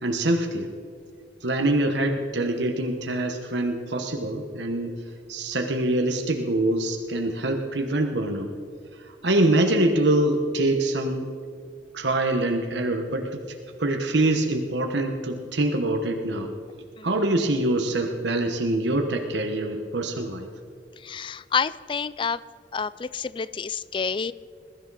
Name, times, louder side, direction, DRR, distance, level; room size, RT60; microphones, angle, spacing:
voice 1, 0.0-0.7 1.4-5.0 5.3-8.5 9.2-11.3 11.9-13.4 13.8-16.5 17.0-20.5, right 1 dB, 70° right, 4 dB, 1.2 m, -24 dB
voice 2, 21.1-22.4 22.7-24.3, left 6 dB, 25° left, 17 dB, 0.3 m, -28 dB
21.5 x 13.5 x 4.1 m, 2.3 s
head